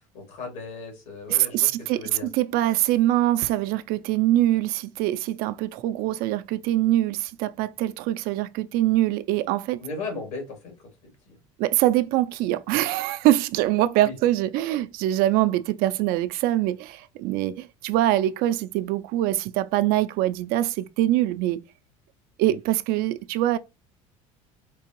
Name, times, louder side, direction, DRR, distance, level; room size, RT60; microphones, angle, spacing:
voice 1, 0.1-2.3 9.8-11.4 14.0-14.1 22.4-22.5, left 3 dB, 80° left, 2.1 m, -37 dB
voice 2, 1.3-9.8 11.6-21.6 22.4-23.6, right 14 dB, 65° right, 0.4 m, -23 dB
4.6 x 2.5 x 2.9 m
hypercardioid pair, 80°, 17 cm